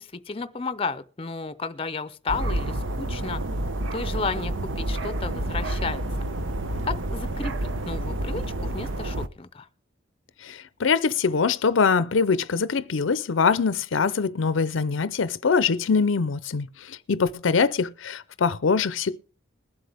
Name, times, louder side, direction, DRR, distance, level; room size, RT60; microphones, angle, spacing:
voice 1, 0.0-3.4 3.9-6.0 6.8-9.7, left 4 dB, 30° left, 0.5 m, -33 dB
sound 1, 2.3-9.3, right 1 dB, 85° right, 0.8 m, -29 dB
voice 2, 10.4-19.2, left 5 dB, 85° left, 0.6 m, -23 dB
21.0 x 7.8 x 3.4 m
head